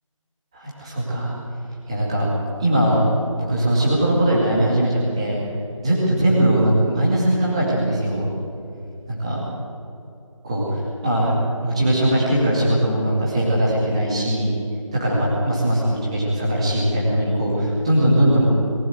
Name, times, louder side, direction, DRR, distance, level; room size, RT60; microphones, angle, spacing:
voice 1, 0.5-1.3 1.9-2.3 2.6-3.0 3.4-5.4 5.8-8.3 9.1-9.4 10.4-11.3 11.6-14.5 14.9-18.5, right 1 dB, 10° right, -6 dB, 2.2 m, -20 dB
22.5 x 15.0 x 7.9 m, 2.8 s
figure-of-eight pair, 175°, 17 cm